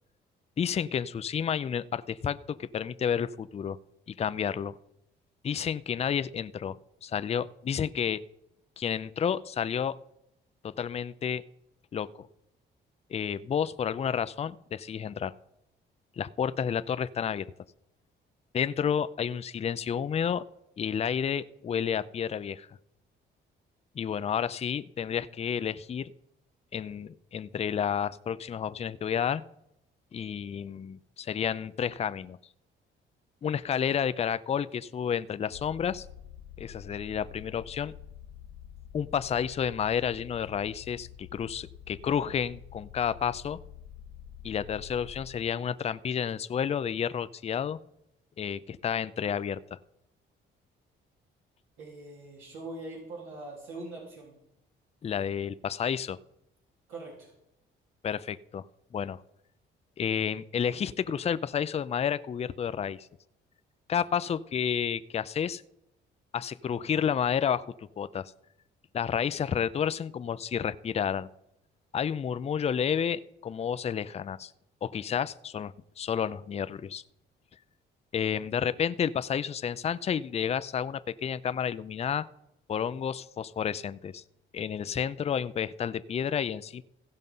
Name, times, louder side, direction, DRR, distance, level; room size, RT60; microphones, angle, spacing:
voice 1, 0.6-3.8 4.2-4.7 5.4-6.8 7.0-8.2 8.8-9.9 10.6-11.4 11.9-12.3 13.1-15.3 16.2-17.5 18.5-20.4 20.8-22.7 24.0-26.1 26.7-29.4 30.1-32.4 33.4-36.1 36.6-37.9 38.9-43.6 44.4-47.8 48.4-49.8 55.0-56.2 58.0-58.7 58.9-59.2 60.0-63.1 63.9-65.6 66.3-68.3 68.9-71.3 71.9-74.5 74.8-77.0 78.1-82.2 82.7-84.2 84.5-86.8, left 8 dB, 30° left, 14 dB, 0.4 m, -30 dB
sound 1, 35.5-45.3, left 10 dB, 85° left, 0.9 m, -48 dB
voice 2, 51.8-54.3 56.9-57.3, right 2 dB, 90° right, -3 dB, 3.2 m, -42 dB
16.0 x 5.3 x 5.4 m, 0.82 s
cardioid pair, 90°, 20 cm